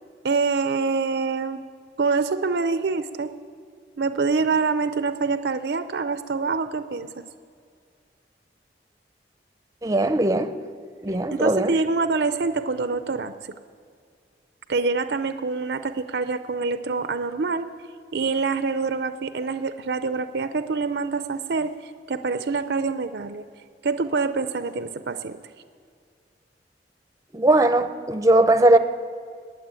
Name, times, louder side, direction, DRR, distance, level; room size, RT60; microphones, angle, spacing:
voice 1, 0.2-1.6 2.0-3.3 4.0-7.1 11.3-13.3 14.7-17.7 18.1-23.5 23.8-25.4, right 4 dB, 70° right, 10 dB, 0.5 m, -25 dB
voice 2, 9.8-10.5 11.0-11.8 27.3-28.8, right 2 dB, 20° right, 10 dB, 0.6 m, -19 dB
21.0 x 7.4 x 8.9 m, 2.2 s
head